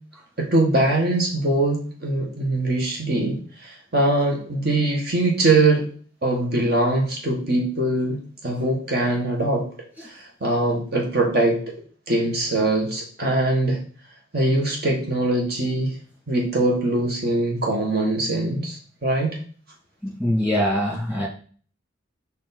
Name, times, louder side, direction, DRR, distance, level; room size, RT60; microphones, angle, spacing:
voice 1, 0.4-5.9 6.2-8.2 8.4-9.7 10.0-11.7 12.1-13.8 14.3-15.9 16.3-19.4, right 2 dB, 55° right, 0 dB, 1.4 m, -22 dB
voice 2, 20.0-21.3, equal, 10° right, -4 dB, 2.2 m, -23 dB
5.5 x 4.8 x 4.0 m, 0.43 s
head